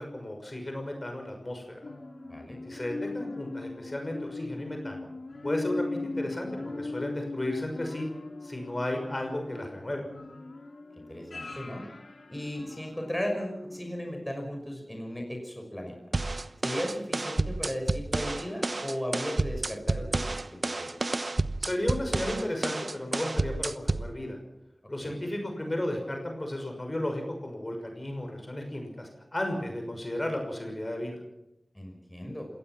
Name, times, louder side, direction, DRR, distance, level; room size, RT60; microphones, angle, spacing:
voice 1, 0.0-1.6 2.6-5.1 5.4-8.1 8.4-10.0 21.6-24.4 24.9-31.2, left 1 dB, 30° left, 3 dB, 6.2 m, -34 dB
sound 1, 1.8-13.3 13.7-13.8, left 2 dB, 70° left, 4.1 m, -39 dB
voice 2, 11.0-11.8 12.3-15.9 16.6-20.9 25.0-25.2 31.7-32.5, equal, 10° left, 2 dB, 6.0 m, -36 dB
sound 2, 16.1-24.1, right 2 dB, 50° right, 0.9 m, -30 dB
27.0 x 18.0 x 6.1 m, 0.90 s
wide cardioid pair, 50°, 0 cm